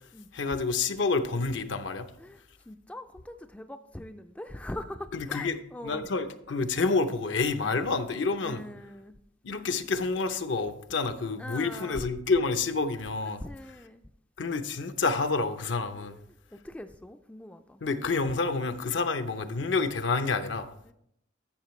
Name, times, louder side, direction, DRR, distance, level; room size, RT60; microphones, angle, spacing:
voice 1, 0.3-2.1 5.1-5.6 5.8-8.6 9.4-13.4 14.4-16.1 17.8-20.7, left 4 dB, 70° left, 0.7 m, -28 dB
voice 2, 2.2-6.0 7.6-7.8 8.4-9.2 11.4-12.0 13.4-14.1 16.0-17.8 20.8-20.9, left 1 dB, 5° left, 0.3 m, -42 dB
11.5 x 7.6 x 3.1 m
head